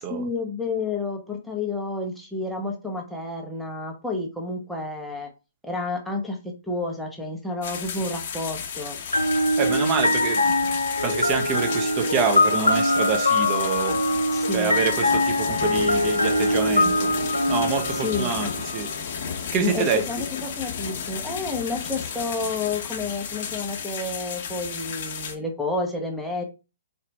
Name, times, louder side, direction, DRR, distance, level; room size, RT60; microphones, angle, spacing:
voice 1, 0.1-5.3 5.6-9.0 14.3-14.8 17.9-18.3 19.6-26.4, left 3 dB, ahead, -1 dB, 0.7 m, -30 dB
sound 1, 7.6-25.3, left 6 dB, 50° left, 0.9 m, -33 dB
sound 2, 9.1-18.9, left 1 dB, 85° left, 0.4 m, -23 dB
voice 2, 9.6-10.5 11.0-14.0 14.5-17.1 17.5-18.9 19.5-20.0, right 6 dB, 30° right, 5 dB, 0.9 m, -26 dB
4.3 x 2.5 x 3.2 m, 0.30 s
figure-of-eight pair, 120°, 0 cm